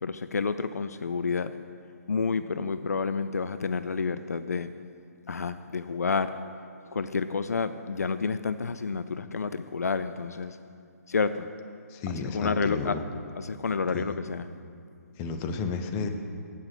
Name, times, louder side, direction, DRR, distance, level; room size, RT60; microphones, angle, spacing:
voice 1, 0.0-1.5 2.1-4.7 5.3-6.3 6.9-10.6 11.1-11.5 12.1-13.0 13.4-14.5, left 5 dB, 75° left, 12 dB, 0.3 m, -29 dB
voice 2, 11.9-13.0 13.9-14.2 15.2-16.1, left 4 dB, 20° left, 6 dB, 0.6 m, -32 dB
8.6 x 6.1 x 7.1 m, 2.4 s
figure-of-eight pair, 135°, 9 cm